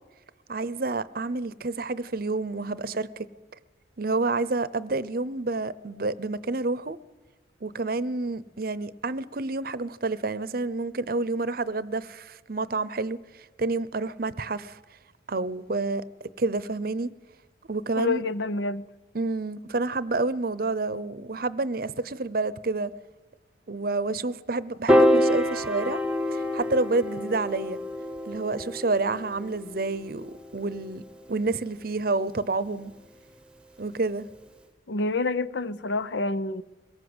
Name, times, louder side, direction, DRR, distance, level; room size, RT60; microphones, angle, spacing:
voice 1, 0.5-3.3 4.0-7.0 7.6-14.8 15.3-16.0 16.4-17.1 17.7-18.2 19.1-22.9 23.7-26.0 26.3-27.8 28.3-31.0 31.3-32.9 33.8-34.3, right 3 dB, 50° right, 0.7 m, -29 dB
voice 2, 18.0-18.8 34.9-36.6, left 3 dB, 70° left, 0.7 m, -28 dB
Piano, 24.9-31.3, equal, 5° right, 1.0 m, -26 dB
22.5 x 17.5 x 8.0 m
head